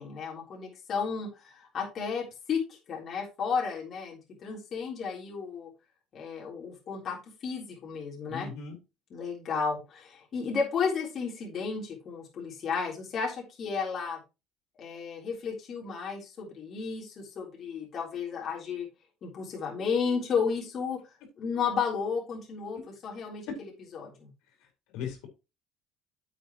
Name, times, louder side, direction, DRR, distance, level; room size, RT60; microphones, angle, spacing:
voice 1, 0.0-2.6 2.9-5.7 6.1-7.2 7.4-8.5 9.1-14.2 14.8-18.9 19.2-21.0 21.4-23.4 23.9-24.3, left 5 dB, 45° left, 3.7 m, -33 dB
voice 2, 8.3-8.8 22.7-22.9 23.2-23.3 24.6-24.7 24.9-25.3, left 6 dB, 80° left, 4.2 m, -38 dB
9.3 x 8.0 x 3.1 m
cardioid pair, 125°, 0 cm